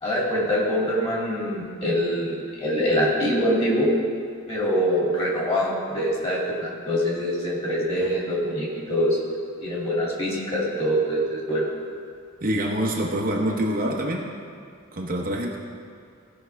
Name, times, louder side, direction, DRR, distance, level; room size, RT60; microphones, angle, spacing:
voice 1, 0.0-3.9 4.5-9.2 9.6-11.7, equal, 25° left, -5 dB, 2.5 m, -24 dB
voice 2, 12.4-14.3 14.9-15.6, right 1 dB, 40° right, -1 dB, 0.9 m, -25 dB
16.0 x 5.9 x 3.4 m, 2.2 s
head